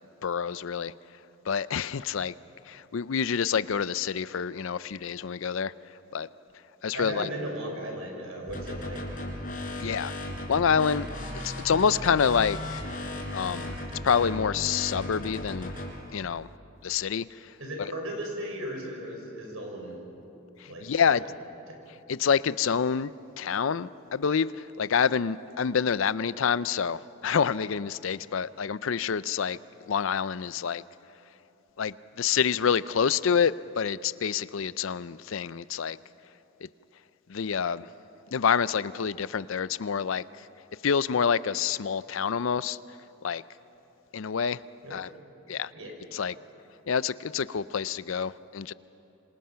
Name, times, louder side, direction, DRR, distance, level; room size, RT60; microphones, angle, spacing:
voice 1, 0.2-0.9 1.5-2.3 2.7-5.7 6.1-6.3 6.8-7.3 9.8-10.1 10.5-11.1 11.3-12.8 13.3-13.8 14.0-15.7 16.1-16.5 16.8-17.3 17.8-17.9 20.6-21.2 22.1-29.6 29.9-30.8 31.8-36.0 37.3-37.9 38.3-40.2 40.8-42.8 43.2-43.4 44.1-44.6 44.9-45.1 45.5-45.7 46.1-46.3 46.9-48.7, left 6 dB, 70° left, 17 dB, 0.5 m, -27 dB
voice 2, 6.9-9.0 17.6-20.0 20.7-21.3 44.8-45.0 45.7-45.9, right 1 dB, 85° right, 1 dB, 5.6 m, -36 dB
sound 1, 8.5-15.9, left 1 dB, 40° left, 4.3 m, -36 dB
26.5 x 26.0 x 5.7 m, 3.0 s
head